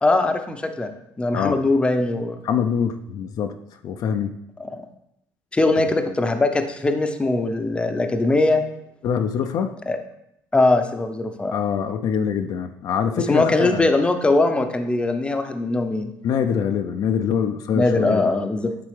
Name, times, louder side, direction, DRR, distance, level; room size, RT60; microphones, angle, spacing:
voice 1, 0.0-0.9 1.2-2.4 5.5-8.6 9.9-10.0 10.5-11.6 13.3-16.1 17.7-18.7, left 2 dB, 15° left, 6 dB, 0.6 m, -21 dB
voice 2, 2.4-3.5 3.8-4.4 9.0-9.7 11.5-13.9 16.2-18.3, left 7 dB, 60° left, 7 dB, 0.5 m, -24 dB
9.4 x 3.4 x 3.3 m, 0.78 s
cardioid pair, 100°, 7 cm